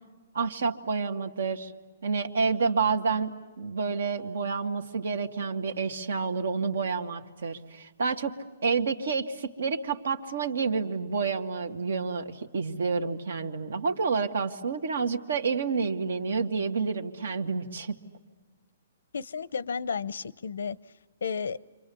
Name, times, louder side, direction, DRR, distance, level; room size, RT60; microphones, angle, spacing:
voice 1, 0.3-1.7 2.0-8.3 8.6-17.9, right 5 dB, 80° right, 6 dB, 2.0 m, -29 dB
voice 2, 19.1-20.8 21.2-21.6, left 6 dB, 90° left, 19 dB, 0.7 m, -32 dB
29.5 x 24.5 x 7.0 m, 1.3 s
hypercardioid pair, 165°, 0 cm